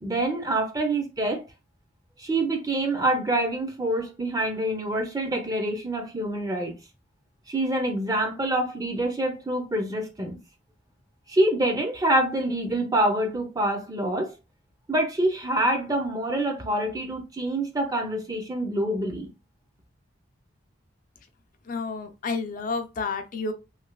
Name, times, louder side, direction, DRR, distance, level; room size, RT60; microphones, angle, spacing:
voice 1, 0.0-1.4 2.2-6.7 7.5-10.4 11.3-14.3 14.9-19.3, right 1 dB, 20° right, 0.5 m, -26 dB
voice 2, 21.7-23.5, left 4 dB, 45° left, 0.4 m, -30 dB
3.1 x 2.7 x 2.2 m
head